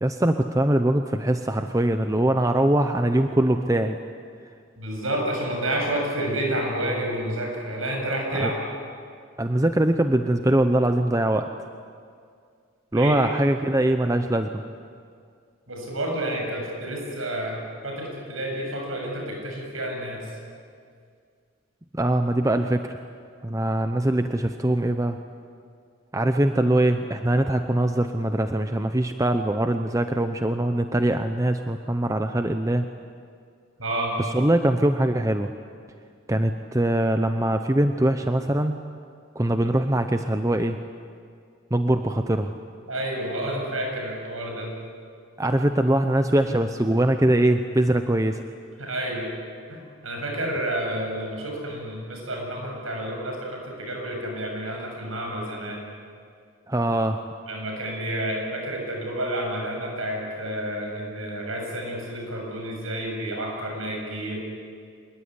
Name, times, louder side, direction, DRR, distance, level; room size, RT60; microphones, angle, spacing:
voice 1, 0.0-4.0 8.4-8.5 9.4-11.5 12.9-14.6 21.9-23.0 23.4-25.2 26.1-32.9 34.3-35.5 36.3-38.8 39.3-40.8 41.7-42.5 45.4-48.4 56.7-57.2, right 1 dB, 15° right, 7 dB, 0.7 m, -22 dB
voice 2, 4.8-8.6 12.9-13.2 15.7-20.3 33.8-34.2 42.9-44.7 48.8-49.3 49.7-55.8 57.5-64.4, right 1 dB, 75° right, 1 dB, 7.6 m, -30 dB
25.0 x 21.5 x 9.8 m, 2.2 s
head